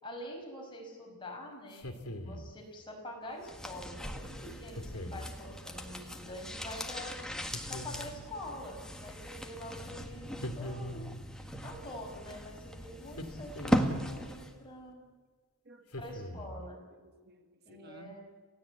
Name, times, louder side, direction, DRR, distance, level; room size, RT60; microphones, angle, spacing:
voice 1, 0.0-1.9 2.2-7.1 7.7-11.1 11.6-15.0 16.0-16.8 17.7-18.2, left 1 dB, 20° left, 0 dB, 5.7 m, -45 dB
sound 1, 1.7-2.6 4.7-5.3 7.5-8.3 10.4-11.3 13.1-14.1 15.9-16.7, left 1 dB, 85° left, 2.3 m, -42 dB
sound 2, 3.4-14.6 14.9-15.0, equal, 5° left, 1.6 m, -38 dB
voice 2, 15.6-16.2 16.9-18.2, right 1 dB, 45° right, 7 dB, 1.4 m, -56 dB
28.5 x 17.0 x 8.4 m, 1.5 s
head